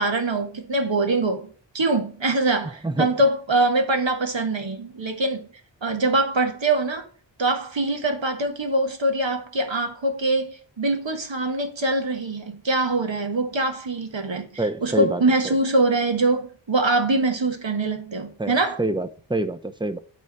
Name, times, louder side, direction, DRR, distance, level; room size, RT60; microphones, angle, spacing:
voice 1, 0.0-5.5 5.8-7.1 7.4-18.8, right 2 dB, 80° right, 1.4 m, -23 dB
voice 2, 14.6-15.6 18.4-20.0, right 2 dB, 10° right, 0.7 m, -27 dB
9.3 x 3.5 x 6.7 m
wide cardioid pair, 55°, 45 cm